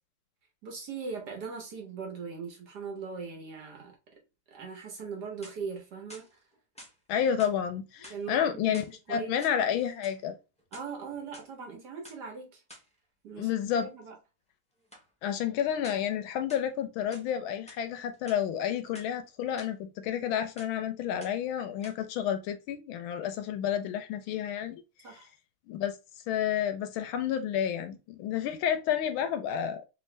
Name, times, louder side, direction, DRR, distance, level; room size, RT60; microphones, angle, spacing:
voice 1, 0.6-3.9 4.5-6.3 8.1-8.8 9.1-9.3 10.7-12.6 13.2-13.5 13.8-14.2 25.0-25.3, right 5 dB, 55° right, 1.4 m, -40 dB
sound 1, 5.2-5.8 6.1-7.0 7.4-7.6 8.0-9.0 9.3-10.2 10.6-11.5 12.0-12.2 12.7-12.9 14.9-15.1 15.8-16.1 16.5-17.3 17.7-17.8 18.1-19.1 19.6-19.7 20.1-20.3 20.6-20.8 21.2-21.5 21.8-21.9, equal, 10° left, 0.4 m, -51 dB
voice 2, 7.1-10.4 13.4-13.9 15.2-24.8 25.1-25.2 25.7-26.0 26.3-29.8, left 9 dB, 75° left, 1.3 m, -30 dB
3.5 x 3.0 x 3.1 m
omnidirectional pair, 2.4 m